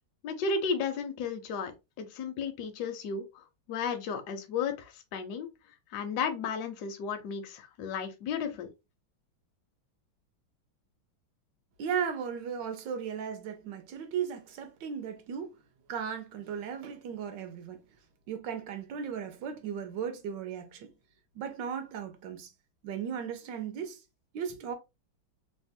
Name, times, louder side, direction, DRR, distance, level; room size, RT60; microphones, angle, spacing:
voice 1, 0.2-1.7 2.0-5.5 5.9-8.7, left 5 dB, 70° left, 1.0 m, -34 dB
voice 2, 11.8-15.6 15.9-17.8 18.3-20.9 21.3-22.5 22.8-24.0 24.3-24.7, right 7 dB, 70° right, 1.1 m, -36 dB
3.4 x 2.2 x 2.6 m
omnidirectional pair, 2.3 m